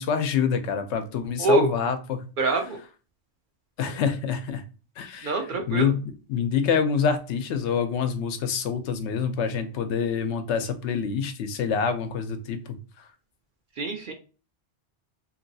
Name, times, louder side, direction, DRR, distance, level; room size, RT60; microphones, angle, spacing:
voice 1, 0.0-2.3 3.8-4.6 5.0-12.6, left 6 dB, 80° left, 8 dB, 0.9 m, -26 dB
voice 2, 1.4-1.7 2.4-2.8 5.2-5.9 13.8-14.1, right 2 dB, 55° right, 3 dB, 0.6 m, -24 dB
3.0 x 2.8 x 2.6 m, 0.35 s
omnidirectional pair, 1.2 m